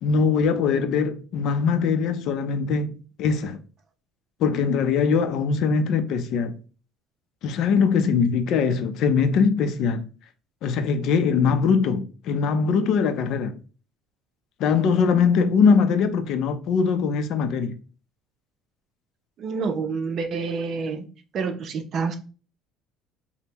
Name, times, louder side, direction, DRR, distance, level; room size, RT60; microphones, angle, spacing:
voice 1, 0.0-2.9 3.2-3.6 4.4-6.6 7.4-10.1 10.6-13.6 14.6-17.8, left 5 dB, 60° left, 0.5 m, -22 dB
voice 2, 19.4-21.1 21.3-22.2, right 5 dB, 45° right, 0.6 m, -28 dB
5.3 x 2.1 x 2.9 m
cardioid pair, 130°, 0 cm